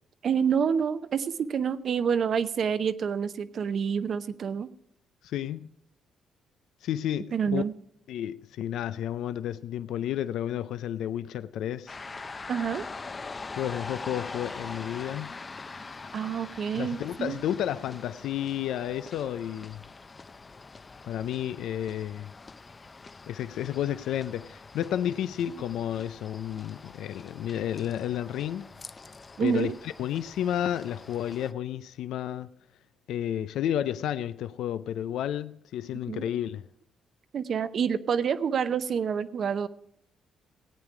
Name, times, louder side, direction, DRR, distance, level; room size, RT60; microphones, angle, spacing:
voice 1, 0.2-4.7 7.3-7.7 12.5-12.9 16.1-17.4 29.4-29.7 36.1-36.3 37.3-39.7, right 7 dB, 55° right, 0.7 m, -28 dB
voice 2, 5.2-5.7 6.8-7.6 8.1-12.0 13.5-15.3 16.7-19.8 21.0-22.3 23.2-28.7 29.4-32.5 33.1-36.6, left 11 dB, 80° left, 0.4 m, -31 dB
sound 1, 11.9-31.5, left 4 dB, 30° left, 0.6 m, -44 dB
17.5 x 8.9 x 4.8 m
cardioid pair, 90°, 0 cm